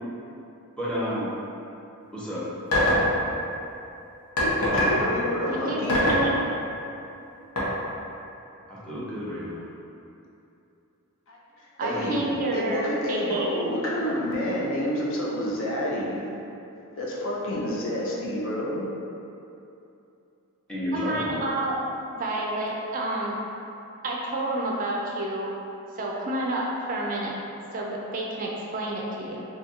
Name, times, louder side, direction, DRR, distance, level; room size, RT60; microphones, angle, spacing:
voice 1, 0.8-1.3 2.1-2.4 5.3-5.8 8.7-9.6 11.9-12.0 20.7-21.5, equal, 5° left, -10 dB, 0.8 m, -31 dB
sound 1, 2.7-3.1 4.4-5.0 5.9-6.3 7.6-7.7, left 1 dB, 85° left, 1.0 m, -21 dB
voice 2, 4.4-6.2 11.3-11.4 11.8-16.3 17.0-18.9, equal, 60° left, -5 dB, 0.6 m, -29 dB
voice 3, 5.5-6.3 11.8-13.5 20.9-21.8 22.2-23.3 24.0-25.5 25.9-27.3 27.7-29.4, right 2 dB, 40° right, -2 dB, 0.4 m, -29 dB
2.7 x 2.5 x 4.2 m, 2.7 s
head